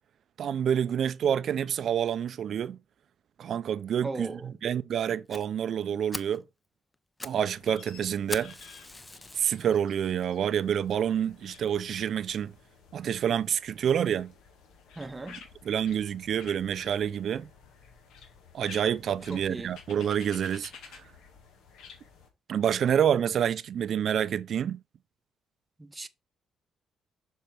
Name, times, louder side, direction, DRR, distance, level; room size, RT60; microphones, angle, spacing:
voice 1, 0.4-2.8 3.4-6.4 7.2-8.5 9.4-12.5 12.9-14.3 15.6-17.5 18.5-21.0 22.5-24.8, right 9 dB, 65° right, 0.5 m, -28 dB
voice 2, 4.0-4.5 15.0-15.4 19.3-19.7 25.8-26.1, right 3 dB, 20° right, 0.7 m, -37 dB
Fire, 5.3-5.4 5.8-5.9 6.1-6.4 6.9-7.4 7.7-7.8 8.3-9.6 10.2-10.3 10.9-11.0 11.2-11.3 11.7-11.8, left 2 dB, 15° left, 0.6 m, -40 dB
sound 1, 7.5-22.3, left 6 dB, 85° left, 1.9 m, -52 dB
6.7 x 4.4 x 4.5 m
cardioid pair, 90°, 0 cm